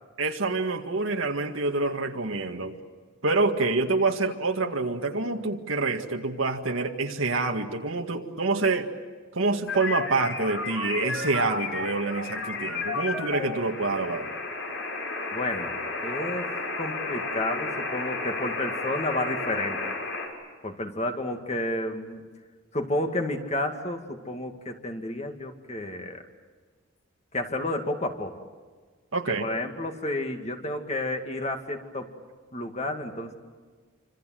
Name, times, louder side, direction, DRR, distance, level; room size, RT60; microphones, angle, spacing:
voice 1, 0.2-2.8 3.2-8.9 9.3-14.3 29.1-29.4, right 3 dB, 75° right, 3 dB, 1.9 m, -27 dB
sound 1, 9.7-20.3, left 3 dB, 65° left, 6.3 m, -32 dB
voice 2, 15.3-20.0 20.6-22.2 22.7-26.2 27.3-28.5 29.4-32.1 32.5-33.3, left 1 dB, 30° left, 5 dB, 2.3 m, -31 dB
28.5 x 26.0 x 7.7 m, 1.5 s
head